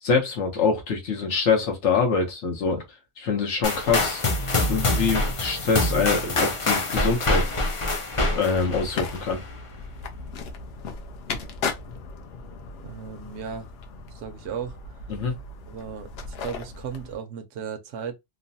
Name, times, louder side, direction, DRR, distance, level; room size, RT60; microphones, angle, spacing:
voice 1, 0.0-2.8 3.2-4.2 4.7-7.5 8.2-9.4 15.1-15.3, left 5 dB, 80° left, 1.1 m, -24 dB
sound 1, 3.6-9.5, left 2 dB, 40° left, 0.4 m, -25 dB
sound 2, 8.4-17.2, left 4 dB, 65° left, 0.8 m, -36 dB
voice 2, 12.8-13.7 14.1-14.8 15.7-18.2, right 7 dB, 75° right, 0.8 m, -35 dB
3.1 x 2.0 x 2.6 m
omnidirectional pair, 1.2 m